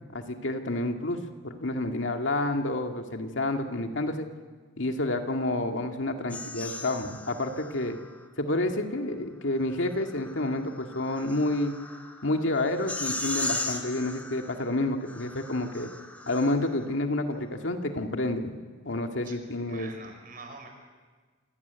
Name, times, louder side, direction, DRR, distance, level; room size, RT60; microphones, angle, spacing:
voice 1, 0.1-4.3 4.8-8.0 8.4-11.7 12.2-15.9 16.3-18.6 18.8-19.9, left 2 dB, 85° left, 4 dB, 2.1 m, -29 dB
sound 1, 6.3-8.3 9.7-16.9, left 2 dB, 10° left, 2.0 m, -38 dB
voice 2, 19.6-20.7, right 4 dB, 50° right, 4 dB, 5.3 m, -45 dB
27.0 x 18.5 x 9.4 m, 1.5 s
head